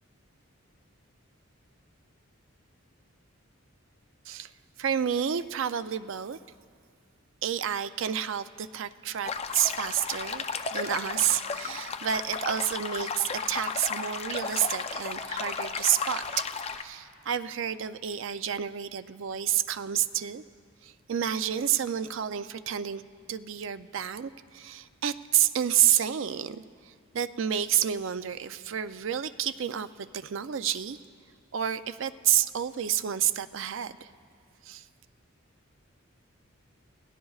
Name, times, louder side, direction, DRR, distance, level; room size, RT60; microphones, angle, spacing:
voice 1, 4.8-6.4 7.4-16.5 16.8-20.4 20.8-23.0 23.3-31.0 31.5-34.1 34.6-34.9, right 10 dB, 60° right, 12 dB, 0.4 m, -29 dB
sound 1, 9.3-16.8, left 5 dB, 30° left, 0.5 m, -34 dB
27.5 x 17.0 x 2.4 m, 2.2 s
head